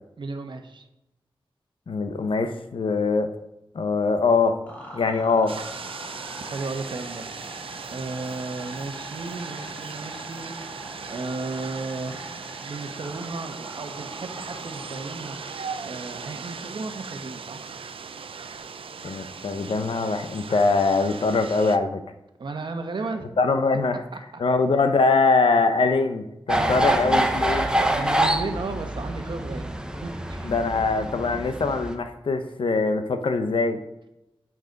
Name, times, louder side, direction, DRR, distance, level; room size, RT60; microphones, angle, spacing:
voice 1, 0.2-0.8 6.4-7.3 7.9-10.5 11.1-12.2 12.6-15.4 15.8-17.7 22.4-23.3 26.6-27.0 27.9-29.7 30.0-30.5, right 3 dB, 60° right, 6 dB, 1.2 m, -34 dB
voice 2, 1.9-3.3 3.7-4.6 4.9-5.5 19.0-22.0 23.4-24.0 24.4-27.7 30.4-33.8, left 4 dB, 70° left, 9 dB, 0.9 m, -22 dB
sound 1, 4.7-16.8 18.5-18.6, equal, 15° left, 3.1 m, -43 dB
sound 2, 5.5-21.8, right 5 dB, 80° right, 0.6 m, -38 dB
sound 3, 26.5-32.0, right 1 dB, 10° right, 0.8 m, -25 dB
9.3 x 6.0 x 5.2 m, 0.89 s
wide cardioid pair, 125°, 9 cm